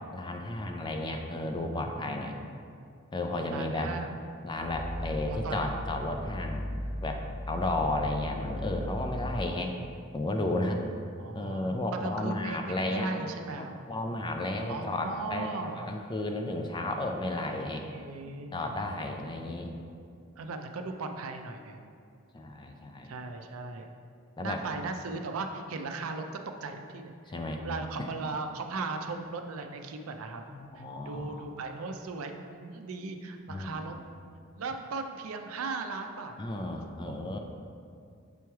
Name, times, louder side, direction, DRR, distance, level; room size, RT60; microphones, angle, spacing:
voice 1, 0.1-2.4 3.1-3.9 4.4-6.7 7.0-9.8 10.1-10.8 11.3-13.1 13.6-17.9 18.5-19.7 22.3-23.1 24.4-24.6 27.3-27.6 28.0-28.1 30.5-31.5 33.5-34.0 36.4-37.4, left 2 dB, 20° left, 4 dB, 0.4 m, -33 dB
voice 2, 3.5-4.1 5.3-5.8 11.2-13.7 14.7-15.9 17.9-18.7 20.4-21.9 23.0-23.9 24.4-26.3 26.6-27.1 27.6-30.4 30.8-33.9 34.5-36.3 37.0-37.4, right 3 dB, 70° right, 5 dB, 0.5 m, -37 dB
Growling, 4.5-9.5, left 1 dB, 65° left, 1.1 m, -37 dB
6.9 x 3.1 x 4.6 m, 2.3 s
head